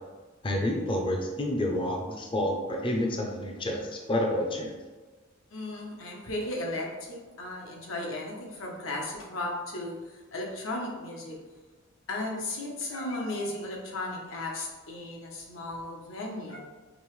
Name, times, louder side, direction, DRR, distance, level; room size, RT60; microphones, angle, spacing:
voice 1, 0.4-4.7, left 1 dB, 25° left, 1 dB, 0.5 m, -29 dB
voice 2, 5.5-11.4 12.1-16.6, left 2 dB, 90° left, -1 dB, 1.0 m, -35 dB
5.2 x 2.9 x 3.2 m, 1.3 s
head